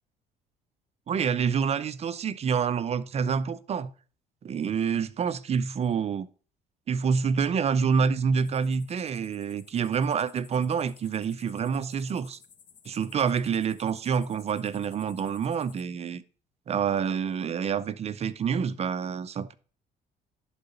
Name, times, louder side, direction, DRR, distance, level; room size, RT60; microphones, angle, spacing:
voice 1, 1.1-3.9 4.4-6.3 6.9-12.4 12.9-16.2 16.7-19.5, right 6 dB, 40° right, 0.6 m, -27 dB
sound 1, 8.4-15.8, left 7 dB, 55° left, 1.4 m, -56 dB
11.5 x 3.9 x 5.3 m
cardioid pair, 110°, 17 cm